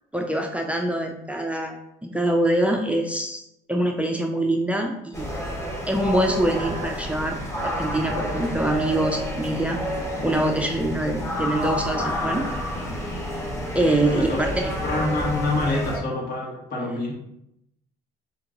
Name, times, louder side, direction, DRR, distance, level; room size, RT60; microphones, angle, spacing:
voice 1, 0.1-1.8 2.0-3.4 3.7-5.3 5.9-9.8 10.2-12.5 13.7-14.8, right 1 dB, 5° right, 2 dB, 0.4 m, -24 dB
sound 1, 5.1-16.0, equal, 15° left, 1.1 m, -29 dB
voice 2, 14.0-14.4 14.8-17.1, left 2 dB, 60° left, -2 dB, 1.6 m, -26 dB
4.4 x 2.8 x 3.8 m, 0.81 s
cardioid pair, 110°, 17 cm